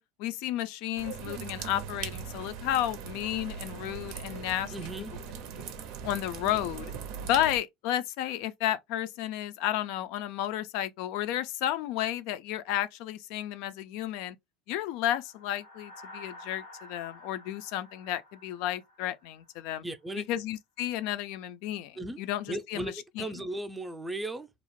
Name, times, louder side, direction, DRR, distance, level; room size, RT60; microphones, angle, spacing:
voice 1, 0.0-4.7 6.0-6.9 7.2-14.4 14.7-19.8 20.2-23.3, left 12 dB, 70° left, 0.3 m, -32 dB
sound 1, 1.0-7.6, right 7 dB, 70° right, 0.5 m, -40 dB
voice 2, 4.7-5.1 19.8-20.3 22.0-22.2 22.5-22.9 23.2-24.5, right 1 dB, 10° right, 0.4 m, -36 dB
sound 2, 15.1-19.6, left 1 dB, 90° left, 0.8 m, -50 dB
2.4 x 2.0 x 3.0 m
supercardioid pair, 105°, 0 cm